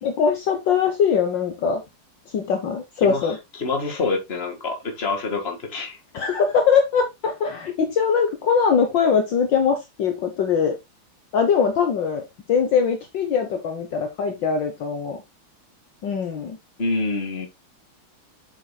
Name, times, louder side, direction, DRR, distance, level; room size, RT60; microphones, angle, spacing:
voice 1, 0.0-1.8 2.3-3.4 6.1-10.8 11.3-12.2 12.5-15.2 16.0-16.6, left 6 dB, 60° left, 1.7 m, -21 dB
voice 2, 3.0-6.0 16.8-17.5, left 3 dB, 30° left, 2.0 m, -26 dB
7.8 x 7.6 x 2.3 m
omnidirectional pair, 2.3 m